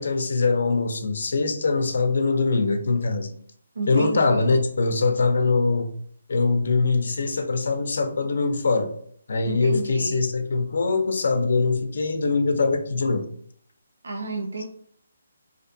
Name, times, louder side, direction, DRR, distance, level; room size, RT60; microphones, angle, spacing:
voice 1, 0.0-3.3 3.9-5.9 6.3-8.9 9.3-13.3, left 3 dB, 55° left, 7 dB, 0.4 m, -22 dB
voice 2, 3.8-4.4 9.4-10.2 14.0-14.6, right 3 dB, 80° right, 1 dB, 0.4 m, -31 dB
2.5 x 2.1 x 2.6 m, 0.63 s
hypercardioid pair, 175°, 0 cm